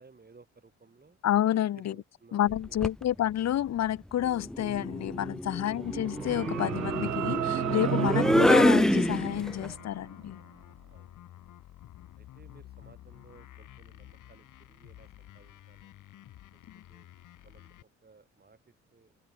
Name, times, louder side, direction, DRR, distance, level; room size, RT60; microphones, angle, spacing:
voice 1, 0.0-1.2 1.8-3.2 10.9-11.2 12.2-15.9 16.5-16.6 16.9-17.1 17.4-19.2, right 4 dB, 30° right, 5.1 m, -58 dB
voice 2, 1.2-1.9 2.3-10.4 16.7-16.8, left 12 dB, 60° left, 0.8 m, -29 dB
sound 1, 2.5-3.0 4.4-9.7, equal, ahead, 0.5 m, -27 dB
sound 2, 5.8-17.8, left 13 dB, 75° left, 5.9 m, -51 dB
sound 3, 5.8-10.0, right 15 dB, 65° right, 0.6 m, -33 dB
open air
supercardioid pair, 55°, 31 cm